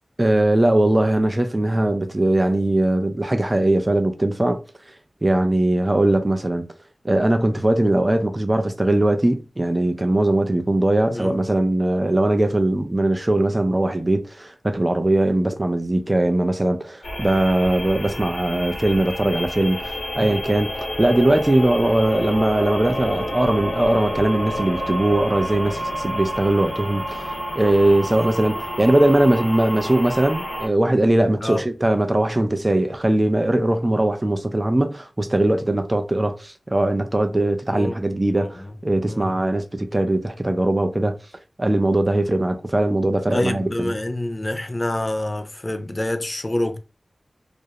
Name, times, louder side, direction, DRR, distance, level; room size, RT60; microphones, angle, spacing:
voice 1, 0.2-4.6 5.2-6.7 7.0-20.7 21.0-27.3 27.5-41.2 41.6-43.9, right 1 dB, 25° right, 0.4 m, -20 dB
sound 1, 17.0-30.7, equal, 85° left, 1.0 m, -29 dB
voice 2, 37.7-38.0 38.3-38.5 39.1-39.3 43.3-46.8, left 1 dB, 35° left, 0.4 m, -27 dB
2.4 x 2.0 x 2.7 m
cardioid pair, 50°, 0 cm